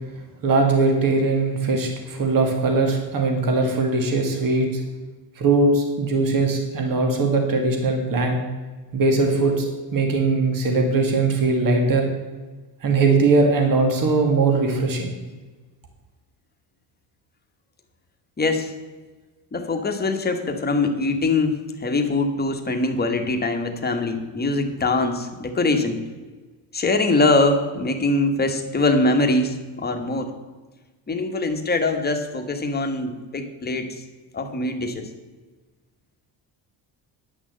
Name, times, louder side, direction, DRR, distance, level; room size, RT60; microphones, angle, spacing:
voice 1, 0.4-4.8 5.4-8.4 8.9-12.1 12.8-15.1, right 3 dB, 45° right, 3 dB, 2.1 m, -20 dB
voice 2, 18.4-18.7 19.5-26.0 26.7-30.3 31.1-33.9 34.3-35.1, left 2 dB, 20° left, 4 dB, 1.4 m, -23 dB
10.0 x 6.2 x 7.5 m, 1.3 s
cardioid pair, 125°, 45 cm